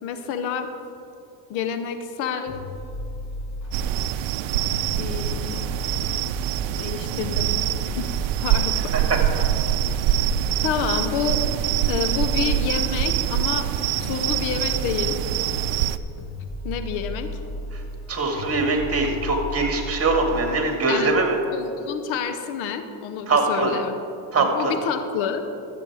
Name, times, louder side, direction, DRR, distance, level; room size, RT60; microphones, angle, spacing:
voice 1, 0.0-0.7 1.5-2.6 4.9-5.7 6.8-7.5 7.8-8.1 8.4-8.9 10.6-11.5 11.9-13.7 14.0-15.2 16.6-17.3 20.7-21.1 21.5-24.0 24.4-25.4, left 7 dB, 75° left, 8 dB, 1.0 m, -28 dB
sound 1, 2.5-20.8, left 1 dB, 35° left, 3.0 m, -34 dB
sound 2, 3.7-16.0, right 13 dB, 70° right, 0.6 m, -25 dB
voice 2, 18.1-21.4 23.3-23.7 24.3-24.7, right 3 dB, 30° right, 2 dB, 2.1 m, -22 dB
13.5 x 7.6 x 4.9 m, 2.7 s
supercardioid pair, 90°, 47 cm